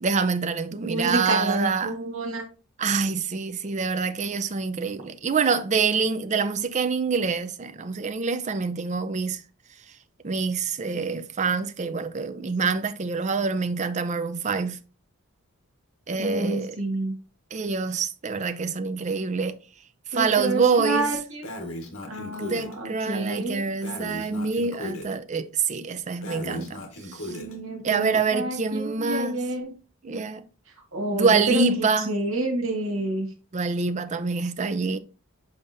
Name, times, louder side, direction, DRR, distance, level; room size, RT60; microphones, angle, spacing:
voice 1, 0.0-1.9 2.8-9.4 10.2-14.8 16.1-16.8 17.5-19.6 20.1-21.1 22.4-27.4 27.8-29.4 30.0-30.4 31.1-32.1 33.5-35.0, right 4 dB, 35° right, 0.5 m, -26 dB
voice 2, 0.7-2.4 16.2-17.1 20.1-21.4 22.1-23.6 27.3-29.7 30.9-31.6 32.1-33.3, right 2 dB, 70° right, 1.9 m, -28 dB
Breathing, 21.4-22.7 23.8-25.1 26.2-27.6, left 1 dB, 80° left, 1.4 m, -36 dB
7.1 x 5.1 x 2.6 m
head